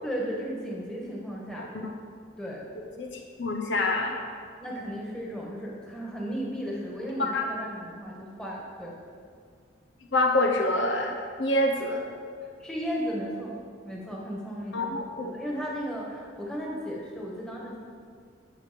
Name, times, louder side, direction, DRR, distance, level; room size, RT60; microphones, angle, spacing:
voice 1, 0.0-1.7 2.4-2.6 4.6-8.9 12.6-13.5 13.8-17.8, equal, 5° left, -4 dB, 1.8 m, -35 dB
voice 2, 1.6-1.9 3.0-4.4 7.2-7.4 10.1-12.1 14.7-15.3, left 1 dB, 60° left, 2 dB, 0.9 m, -27 dB
12.5 x 6.7 x 5.3 m, 2.1 s
head